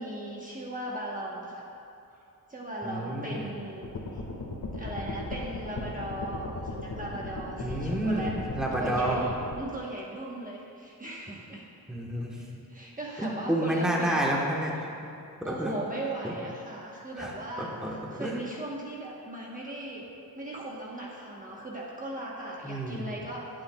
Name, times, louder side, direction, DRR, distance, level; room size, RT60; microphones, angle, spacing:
voice 1, 0.0-1.7 2.1-2.2 2.5-4.2 4.7-8.4 8.7-11.7 12.3-14.2 15.4-20.1 20.3-23.6, right 1 dB, 20° right, -4 dB, 1.1 m, -38 dB
voice 2, 2.8-3.5 7.6-9.2 11.9-12.4 13.2-15.1 15.4-15.7 16.2-16.3 17.2-17.3 17.6-18.4 22.6-23.0, right 1 dB, ahead, -3 dB, 1.2 m, -30 dB
sound 1, 3.8-9.6, left 2 dB, 70° left, 1.7 m, -37 dB
19.5 x 8.7 x 2.3 m, 2.7 s
wide cardioid pair, 145°, 37 cm